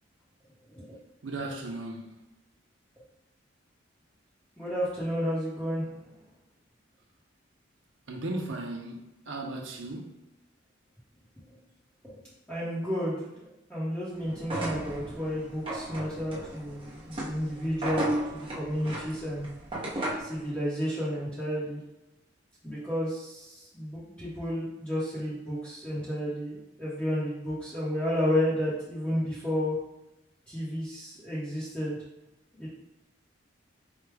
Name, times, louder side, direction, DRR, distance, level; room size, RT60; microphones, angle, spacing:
voice 1, 1.2-2.3 8.1-10.2, right 2 dB, 80° right, 2 dB, 0.7 m, -36 dB
voice 2, 4.6-5.8 12.0-12.2 12.5-19.5 20.2-21.8 22.6-29.7 30.5-32.0 32.6-32.7, equal, 5° left, -11 dB, 1.0 m, -32 dB
sound 1, 14.4-20.4, right 1 dB, 30° right, 0.9 m, -35 dB
4.8 x 2.3 x 3.3 m, 0.92 s
head